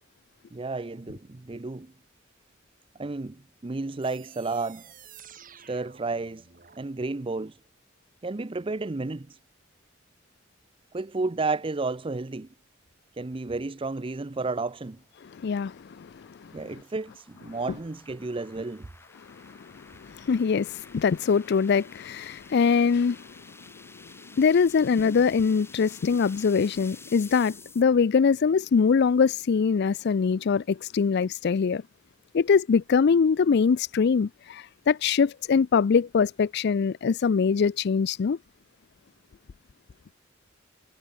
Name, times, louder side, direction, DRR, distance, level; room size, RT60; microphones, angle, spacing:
voice 1, 0.5-1.9 3.0-4.9 5.7-6.5 6.8-7.6 8.2-9.4 10.9-12.5 13.2-15.0 16.5-18.9, right 3 dB, 25° right, 0.6 m, -32 dB
sound 1, 4.0-6.9, right 8 dB, 45° right, 4.3 m, -51 dB
sound 2, 13.9-27.8, left 3 dB, 10° left, 1.8 m, -52 dB
voice 2, 15.4-16.1 20.1-23.2 24.4-31.8 32.3-38.4, left 5 dB, 55° left, 0.4 m, -23 dB
head